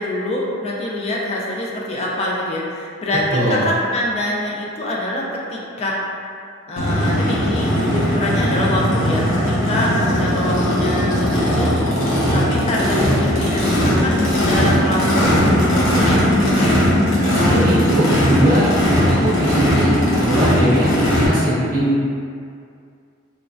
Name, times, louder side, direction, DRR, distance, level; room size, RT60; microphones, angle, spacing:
voice 1, 0.0-5.2 5.5-6.0 6.7-11.8 12.3-16.7 18.6-18.9, left 1 dB, 30° left, -4 dB, 0.3 m, -25 dB
voice 2, 3.3-3.7 17.3-22.0, equal, 45° right, -9 dB, 0.6 m, -20 dB
Race car auto racing / Idling / Accelerating revving vroom, 6.8-21.3, equal, 85° left, 0.7 m, -18 dB
3.1 x 2.1 x 2.5 m, 2.3 s
head